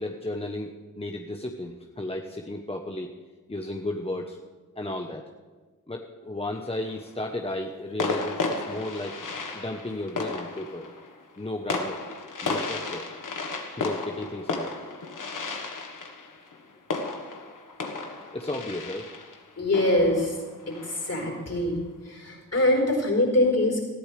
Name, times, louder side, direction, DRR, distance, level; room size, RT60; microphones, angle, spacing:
voice 1, 0.0-3.1 3.5-4.4 4.8-5.2 5.9-9.2 9.5-10.9 11.4-12.0 12.4-13.1 13.7-14.8 18.3-19.1, left 1 dB, 20° left, 2 dB, 1.0 m, -34 dB
sound 1, 6.5-7.1 8.0-21.4, left 3 dB, 70° left, 1.5 m, -34 dB
voice 2, 19.6-20.4 20.7-23.8, left 1 dB, 50° left, 1 dB, 4.5 m, -24 dB
19.5 x 13.0 x 3.4 m, 1.3 s
cardioid pair, 50°, 33 cm